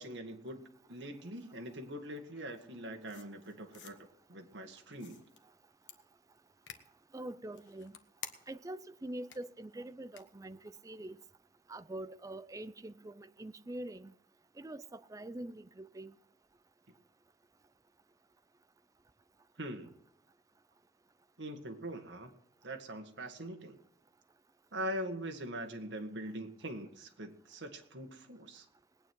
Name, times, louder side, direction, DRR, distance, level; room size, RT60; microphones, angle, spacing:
voice 1, 0.0-4.0 4.3-5.2 19.6-19.9 21.4-22.3 22.6-23.8 24.7-28.7, right 1 dB, 80° right, 1.8 m, -42 dB
sound 1, 3.1-3.9 4.9-5.4 5.9-6.0 6.7-6.8 7.5-8.7 9.3-9.4 10.1-10.2, left 8 dB, 90° left, 1.3 m, -49 dB
voice 2, 7.1-7.9 8.5-10.6 10.8-11.2 11.7-14.1 14.6-16.1, right 1 dB, 20° right, 0.5 m, -44 dB
20.0 x 9.3 x 4.6 m
head